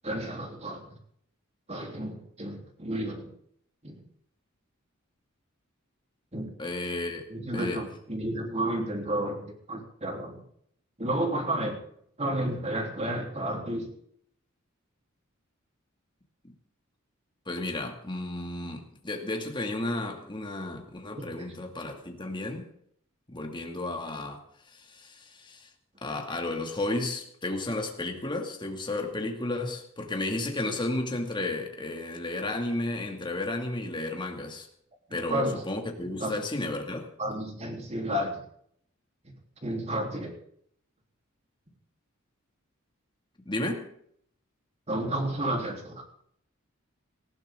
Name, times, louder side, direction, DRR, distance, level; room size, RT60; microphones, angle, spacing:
voice 1, 0.0-0.9 1.7-3.3 3.8-4.0 6.3-6.5 7.3-10.4 11.0-11.8 12.2-13.9 21.2-21.3 35.1-35.6 36.2-36.4 37.2-38.4 39.2-39.3 39.6-40.3 44.9-46.0, right 1 dB, 30° right, 2 dB, 3.6 m, -31 dB
voice 2, 6.6-7.3 7.5-7.8 17.5-22.7 23.3-24.4 24.7-25.7 26.0-34.7 35.1-37.1 43.5-43.9, left 2 dB, 25° left, 3 dB, 2.4 m, -33 dB
19.5 x 15.0 x 3.8 m, 0.66 s
head